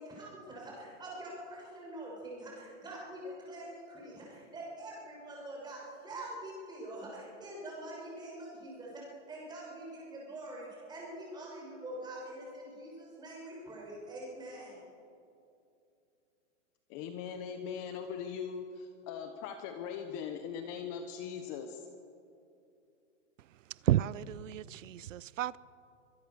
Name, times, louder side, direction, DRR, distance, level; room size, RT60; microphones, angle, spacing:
voice 1, 0.0-14.8, right 1 dB, 10° right, -3 dB, 6.5 m, -45 dB
voice 2, 16.9-21.8, left 7 dB, 25° left, 6 dB, 1.1 m, -40 dB
voice 3, 23.9-25.6, right 12 dB, 90° right, 20 dB, 0.6 m, -31 dB
24.5 x 19.5 x 6.9 m, 2.6 s
hypercardioid pair, 165°, 37 cm